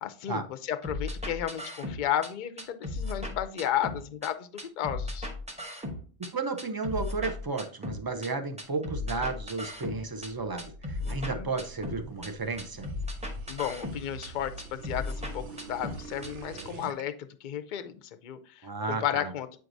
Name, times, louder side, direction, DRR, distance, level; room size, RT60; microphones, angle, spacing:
voice 1, 0.0-5.3 11.0-11.5 13.5-19.6, left 10 dB, 55° left, 9 dB, 0.6 m, -33 dB
sound 1, 0.8-2.3 2.6-4.3 4.6-6.3 6.6-8.3 8.6-10.3 10.6-12.3 12.6-14.3 14.6-16.3 16.6-16.7, left 2 dB, 5° right, 0.8 m, -36 dB
voice 2, 6.3-12.9 18.6-19.3, right 3 dB, 30° right, 7 dB, 0.4 m, -33 dB
sound 2, 9.5-17.0, right 4 dB, 90° right, 1.0 m, -46 dB
8.0 x 4.7 x 2.6 m, 0.43 s
omnidirectional pair, 1.2 m